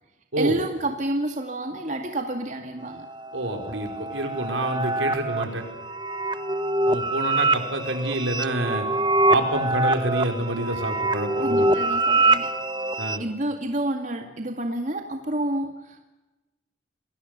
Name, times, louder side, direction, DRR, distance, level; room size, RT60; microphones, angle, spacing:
voice 1, 0.4-3.1 11.4-12.5 13.2-16.0, right 1 dB, 40° right, 4 dB, 2.3 m, -29 dB
sound 1, 2.8-13.2, right 2 dB, 25° right, 1.1 m, -25 dB
voice 2, 3.3-5.6 6.8-8.8 9.3-11.7 13.0-13.2, right 1 dB, 90° right, 4 dB, 5.1 m, -27 dB
28.0 x 21.5 x 6.9 m, 1.0 s
head